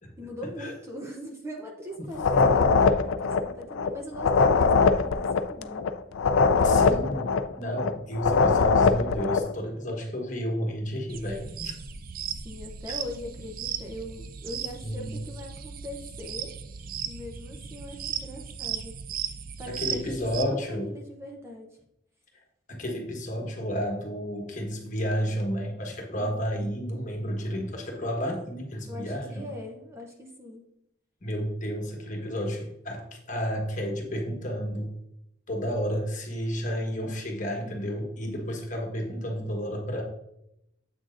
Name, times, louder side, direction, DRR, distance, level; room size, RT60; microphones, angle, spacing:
voice 1, 0.2-5.8 12.4-16.5 17.0-18.9 19.6-21.8 26.1-26.7 28.9-30.6 38.2-38.4, left 1 dB, 15° right, 1 dB, 0.7 m, -41 dB
voice 2, 2.0-2.8 6.6-7.3 7.6-11.8 14.8-15.2 19.7-20.9 22.7-29.5 31.2-34.9 35.5-40.0, equal, 40° left, 1 dB, 1.3 m, -31 dB
sound 1, 2.1-9.5, left 4 dB, 90° left, 0.4 m, -22 dB
sound 2, 11.1-20.4, right 8 dB, 45° right, 0.4 m, -36 dB
7.8 x 6.2 x 2.5 m, 0.80 s
head